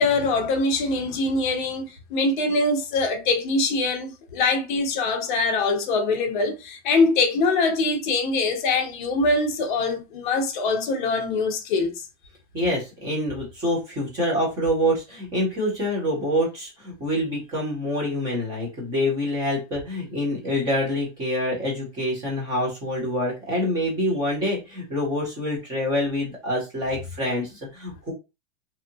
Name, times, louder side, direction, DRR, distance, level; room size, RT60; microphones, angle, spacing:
voice 1, 0.0-12.1, left 3 dB, 40° left, 0.6 m, -23 dB
voice 2, 12.5-28.1, left 1 dB, 10° right, 0.5 m, -26 dB
2.7 x 2.5 x 2.6 m
supercardioid pair, 165°, 40 cm